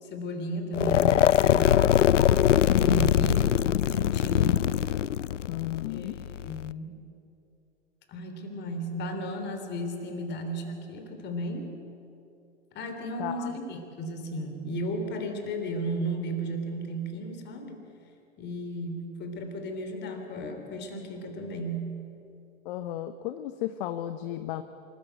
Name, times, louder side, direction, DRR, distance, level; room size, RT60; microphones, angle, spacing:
voice 1, 0.0-1.9 2.7-4.7 5.9-6.9 8.1-11.7 12.7-17.8 18.4-21.9, right 1 dB, 30° left, 5 dB, 3.4 m, -34 dB
sound 1, 0.7-6.7, left 10 dB, 85° left, 0.5 m, -22 dB
voice 2, 5.5-6.2 13.2-13.6 22.6-24.6, left 13 dB, 50° left, 10 dB, 0.9 m, -34 dB
25.0 x 14.0 x 9.2 m, 2.8 s
hypercardioid pair, 110°, 36 cm